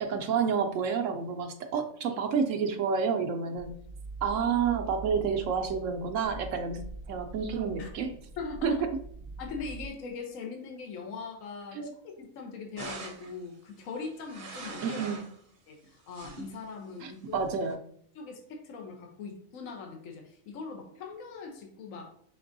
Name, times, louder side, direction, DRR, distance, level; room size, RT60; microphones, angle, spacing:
voice 1, 0.0-3.7 4.2-8.1 8.6-8.7 11.7-11.9 14.8-15.2 17.0-17.8, right 6 dB, 70° right, 4 dB, 0.9 m, -29 dB
sound 1, 3.6-9.9, right 3 dB, 10° right, 0.5 m, -43 dB
voice 2, 8.4-8.8 9.4-11.8 12.2-15.0 15.7-17.4 18.1-22.1, left 4 dB, 75° left, 3 dB, 1.2 m, -41 dB
sound 2, 12.8-13.4 14.1-15.4 15.8-16.6 17.3-17.7, right 3 dB, 45° right, 0.9 m, -42 dB
5.9 x 3.5 x 2.6 m, 0.65 s
omnidirectional pair, 1.4 m